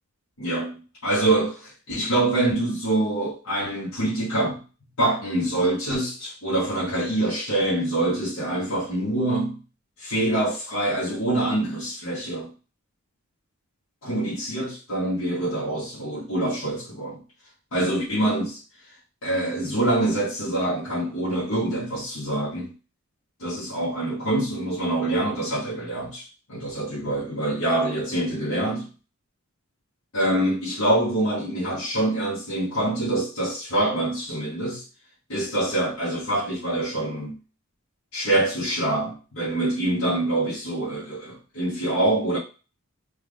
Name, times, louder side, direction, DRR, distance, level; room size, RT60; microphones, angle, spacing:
voice 1, 0.4-4.6 5.0-9.6 10.0-12.5 14.0-17.2 17.7-18.6 19.2-22.7 23.4-28.9 30.1-34.8 35.3-37.4 38.1-42.4, right 1 dB, 70° left, 1.3 m, -25 dB
3.4 x 2.4 x 3.4 m
head